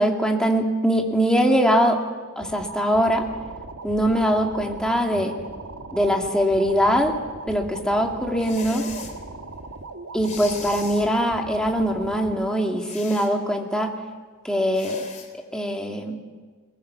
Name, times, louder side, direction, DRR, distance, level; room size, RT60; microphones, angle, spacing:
voice 1, 0.0-2.0 2.4-3.2 3.8-5.3 5.9-7.1 7.5-8.8 10.1-13.9 14.4-15.0 15.3-16.2, equal, 5° left, 1 dB, 2.3 m, -22 dB
sound 1, 2.4-12.4, right 3 dB, 85° right, 1.9 m, -39 dB
sound 2, 8.4-9.2 10.2-11.1 12.8-13.3 14.7-15.3, left 5 dB, 35° left, 2.9 m, -38 dB
21.0 x 20.0 x 7.4 m, 1.4 s
head